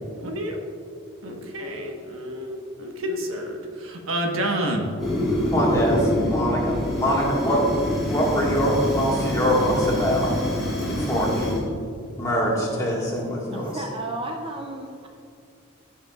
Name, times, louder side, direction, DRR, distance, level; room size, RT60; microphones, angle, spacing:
voice 1, 0.2-0.6 1.2-3.6 3.8-4.9, right 1 dB, 75° right, 2 dB, 1.3 m, -29 dB
Fire, 5.0-11.6, left 1 dB, ahead, 2.2 m, -26 dB
voice 2, 5.5-7.7 8.1-10.4 10.8-11.7 12.2-13.8, equal, 15° left, -4 dB, 1.6 m, -24 dB
voice 3, 13.5-15.1, right 2 dB, 25° right, 2 dB, 0.5 m, -33 dB
14.5 x 7.1 x 2.4 m, 2.3 s
head